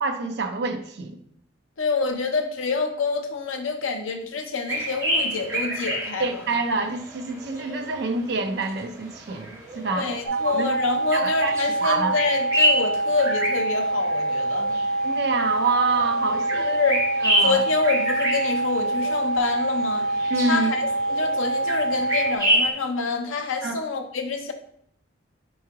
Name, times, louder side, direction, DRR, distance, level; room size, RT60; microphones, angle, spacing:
voice 1, 0.0-1.2 6.2-10.1 10.4-10.7 11.1-11.5 11.8-12.1 15.0-16.8 17.2-17.6 20.3-20.7 23.6-23.8, right 3 dB, 55° right, 5 dB, 0.5 m, -26 dB
voice 2, 1.8-6.3 9.9-14.8 16.6-17.0 17.4-20.1 20.5-24.5, left 4 dB, 85° left, 4 dB, 0.6 m, -27 dB
sound 1, 4.7-22.7, equal, 15° right, 1.3 m, -29 dB
sound 2, 10.3-22.4, right 2 dB, 25° left, 1.0 m, -25 dB
3.6 x 3.1 x 4.6 m, 0.69 s
head